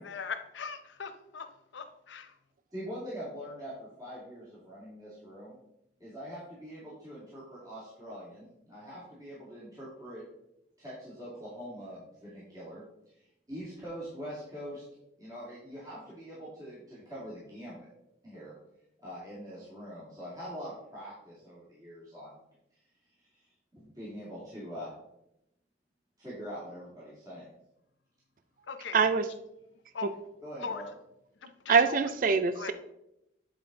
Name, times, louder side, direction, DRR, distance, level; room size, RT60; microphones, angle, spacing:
voice 1, 0.0-1.5 1.7-2.3 28.7-29.0 29.9-30.1 30.6-30.8 31.6-31.7 32.6-32.7, left 5 dB, 85° left, 8 dB, 0.7 m, -39 dB
voice 2, 2.7-5.6 6.0-10.2 10.8-12.8 13.1-14.8 15.2-17.9 18.2-18.5 19.0-22.3 23.7-24.9 26.2-27.5 30.4-30.9, equal, 20° right, -9 dB, 2.2 m, -43 dB
voice 3, 28.9-29.3 30.0-30.1 31.7-32.7, right 5 dB, 45° right, 11 dB, 0.4 m, -24 dB
8.9 x 5.1 x 3.7 m, 0.84 s
head